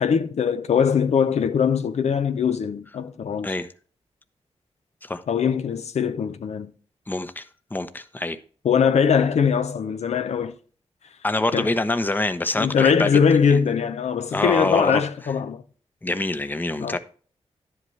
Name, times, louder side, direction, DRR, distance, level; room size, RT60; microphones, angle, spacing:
voice 1, 0.0-3.5 5.3-6.7 8.6-10.6 11.5-11.7 12.6-15.6 16.8-17.0, left 7 dB, 75° left, 0.6 m, -21 dB
voice 2, 7.1-7.4 7.7-8.4 11.2-13.1 13.5-13.6 14.3-15.0 16.0-17.0, left 2 dB, 15° left, 0.7 m, -25 dB
10.5 x 8.0 x 3.2 m
wide cardioid pair, 85°, 11 cm